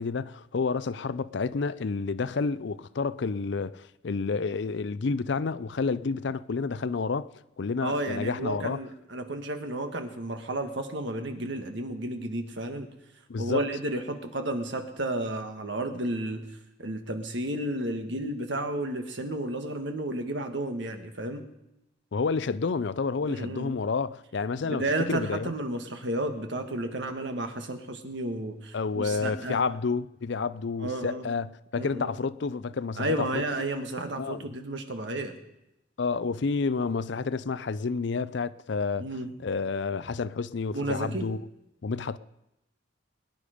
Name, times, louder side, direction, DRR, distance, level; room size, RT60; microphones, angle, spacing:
voice 1, 0.0-7.3 7.6-8.8 13.3-13.6 22.1-24.8 25.1-25.5 28.7-33.4 34.2-34.5 36.0-39.0 39.4-41.4 41.8-42.2, left 4 dB, 60° left, 0.5 m, -29 dB
voice 2, 7.8-12.9 13.4-16.4 16.8-21.4 23.2-23.7 24.6-29.6 30.8-31.2 31.7-32.1 33.0-35.4 39.0-39.3 40.7-41.3, right 1 dB, 65° right, 1.5 m, -32 dB
22.0 x 10.0 x 5.1 m
head